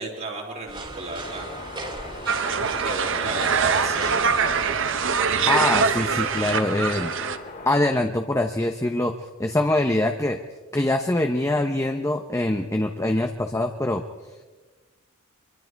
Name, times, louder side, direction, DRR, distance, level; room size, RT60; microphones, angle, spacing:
voice 1, 0.0-1.5 2.8-4.2 6.7-6.9, right 2 dB, 45° right, -5 dB, 3.1 m, -34 dB
sound 1, 0.7-5.7, right 2 dB, 25° right, 2.7 m, -38 dB
sound 2, 1.2-7.7, left 3 dB, 45° left, 2.7 m, -40 dB
sound 3, 2.3-7.4, right 6 dB, 65° right, 1.2 m, -23 dB
voice 2, 5.5-7.1 7.7-9.1 9.4-10.4 10.7-14.0, left 1 dB, 15° left, 4 dB, 0.9 m, -23 dB
25.5 x 24.0 x 4.7 m, 1.3 s
head